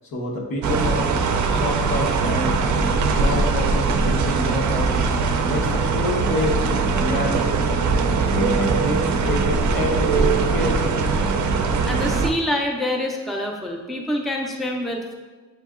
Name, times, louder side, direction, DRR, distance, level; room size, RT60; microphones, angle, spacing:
voice 1, 0.1-1.1 1.5-4.9 5.4-7.6 8.3-11.1, left 2 dB, 90° left, -1 dB, 1.0 m, -28 dB
sound 1, 0.6-12.3, right 4 dB, 60° right, 0.4 m, -21 dB
voice 2, 11.9-15.2, left 1 dB, ahead, 1 dB, 0.4 m, -26 dB
7.6 x 2.8 x 2.4 m, 1.3 s
wide cardioid pair, 140°, 33 cm